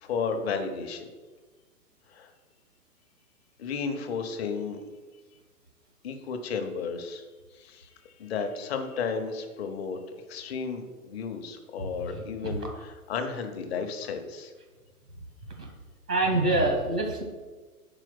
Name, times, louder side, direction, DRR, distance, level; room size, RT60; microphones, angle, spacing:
voice 1, 0.0-1.1 2.1-2.3 3.6-4.8 6.0-7.2 7.5-7.9 8.2-10.0 10.3-14.5, left 5 dB, 40° left, 6 dB, 0.8 m, -33 dB
voice 2, 16.1-17.2, right 2 dB, 90° right, 3 dB, 1.6 m, -25 dB
4.9 x 4.5 x 5.8 m, 1.3 s
figure-of-eight pair, 110°, 46 cm